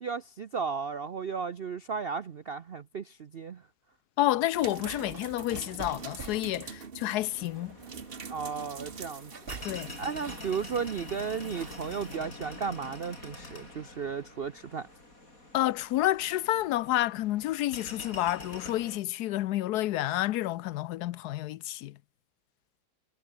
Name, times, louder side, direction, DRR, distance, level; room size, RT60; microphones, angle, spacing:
voice 1, 0.0-3.6 8.3-9.3 10.0-14.9, right 6 dB, 70° right, 0.5 m, -34 dB
voice 2, 4.2-7.8 9.6-9.9 15.5-22.0, left 15 dB, 70° left, 1.0 m, -29 dB
sound 1, 4.5-12.2 13.2-13.3, right 5 dB, 35° right, 1.2 m, -44 dB
sound 2, 7.3-19.0, left 2 dB, 45° left, 7.6 m, -46 dB
omnidirectional pair, 2.0 m